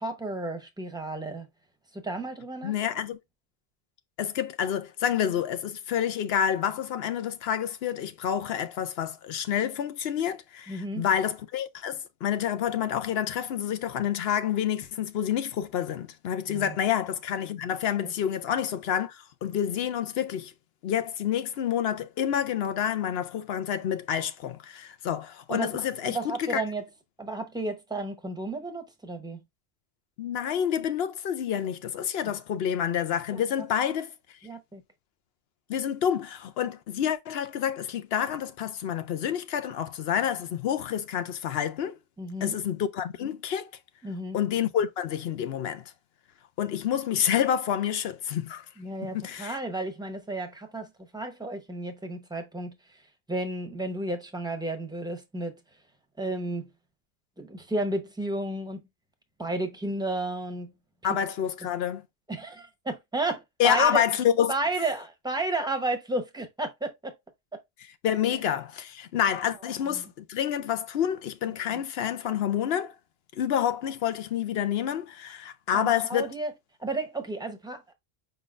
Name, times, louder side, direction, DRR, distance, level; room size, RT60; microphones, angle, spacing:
voice 1, 0.0-1.5 1.9-2.7 10.7-11.0 16.5-16.7 18.0-18.1 25.5-26.8 27.2-29.4 33.3-33.4 34.4-34.8 42.2-42.6 44.0-44.4 48.8-50.9 51.1-52.7 53.3-55.5 56.2-56.7 57.4-58.8 59.4-60.7 62.3-64.0 64.5-67.1 68.3-68.4 69.9-70.0 75.7-76.5 76.8-77.9, right 2 dB, 5° right, 0.7 m, -32 dB
voice 2, 2.6-3.2 4.2-20.5 20.8-26.6 30.2-34.1 35.7-41.9 42.4-43.7 44.3-45.8 46.6-48.7 49.0-49.6 61.0-62.0 63.6-64.5 68.0-72.9 73.3-76.3, left 9 dB, 70° left, 0.8 m, -28 dB
5.2 x 3.8 x 2.4 m
omnidirectional pair, 1.1 m